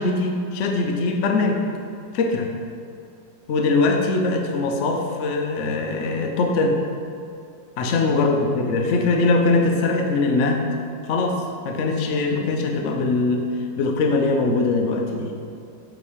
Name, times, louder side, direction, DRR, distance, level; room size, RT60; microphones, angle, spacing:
voice 1, 0.0-1.6 2.1-2.5 3.5-6.8 7.8-10.7 11.0-13.4 13.8-15.3, left 3 dB, 65° left, 2 dB, 0.7 m, -21 dB
7.9 x 3.1 x 5.0 m, 2.5 s
omnidirectional pair, 2.0 m